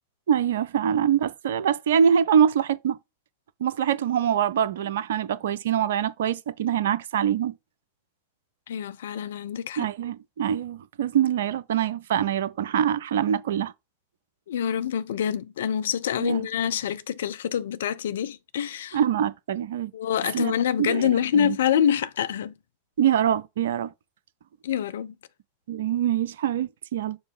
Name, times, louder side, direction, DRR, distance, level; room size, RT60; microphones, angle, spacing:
voice 1, 0.3-3.0 3.6-7.5 9.8-13.7 16.2-16.5 18.9-19.9 20.3-20.5 20.8-21.6 23.0-23.9 25.7-27.2, right 9 dB, 60° right, 0.5 m, -24 dB
voice 2, 8.7-9.9 14.5-19.0 19.9-22.5 24.6-25.1, left 9 dB, 60° left, 0.5 m, -26 dB
7.0 x 2.8 x 5.0 m
figure-of-eight pair, 90°, 0 cm